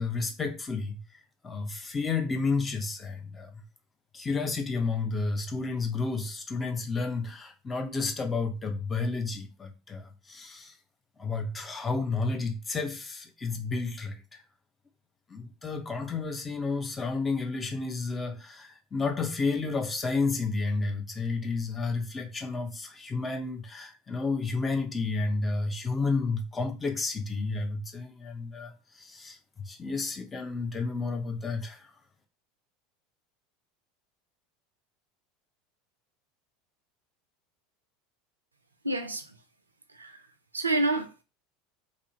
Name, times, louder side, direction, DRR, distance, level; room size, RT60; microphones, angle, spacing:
voice 1, 0.0-3.6 4.1-10.8 11.2-14.4 15.3-31.9, left 4 dB, 20° left, 0.4 m, -31 dB
voice 2, 38.8-39.2 40.0-40.1 40.5-41.2, right 2 dB, 80° right, 0.3 m, -28 dB
2.4 x 2.0 x 2.8 m
figure-of-eight pair, 75°, 0 cm